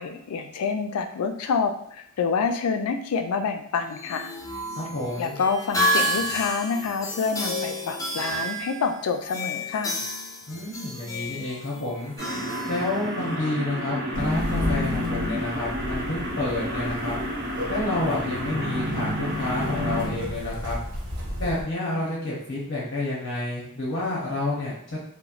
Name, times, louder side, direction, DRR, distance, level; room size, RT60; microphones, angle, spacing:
voice 1, 0.0-4.3 5.2-9.9, left 5 dB, 90° left, 6 dB, 0.4 m, -27 dB
sound 1, 3.8-13.4, equal, 15° left, 0.4 m, -30 dB
voice 2, 4.8-5.3 10.5-12.1 12.7-17.1 17.7-20.8 21.4-25.0, left 2 dB, 50° left, -6 dB, 0.8 m, -29 dB
sound 2, 12.2-20.1, equal, 50° right, 0.7 m, -31 dB
sound 3, 14.1-21.6, left 1 dB, 85° right, 0.8 m, -31 dB
3.0 x 2.0 x 2.4 m, 0.69 s
head